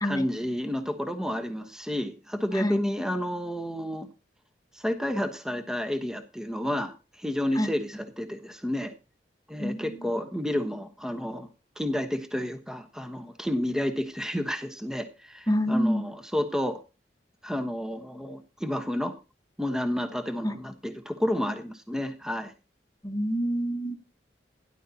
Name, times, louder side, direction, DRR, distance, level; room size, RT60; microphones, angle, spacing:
voice 1, 0.0-4.1 4.8-8.9 9.5-11.5 11.8-16.8 17.4-19.1 19.6-22.5, left 1 dB, 5° right, 1.2 m, -30 dB
voice 2, 9.6-10.0 15.5-16.0 20.4-20.5 23.0-24.0, equal, 20° left, 1.3 m, -27 dB
17.0 x 11.0 x 2.9 m
head